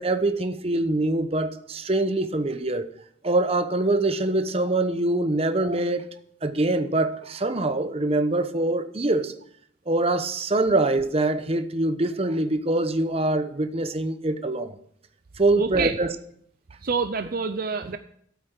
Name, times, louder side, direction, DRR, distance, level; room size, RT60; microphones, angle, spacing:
voice 1, 0.0-2.9 3.2-6.0 6.4-9.3 9.9-14.8 15.4-16.1, right 2 dB, 30° right, 0.9 m, -24 dB
voice 2, 15.6-16.0 16.8-18.0, right 5 dB, 50° right, 0.6 m, -27 dB
12.5 x 8.7 x 6.7 m
head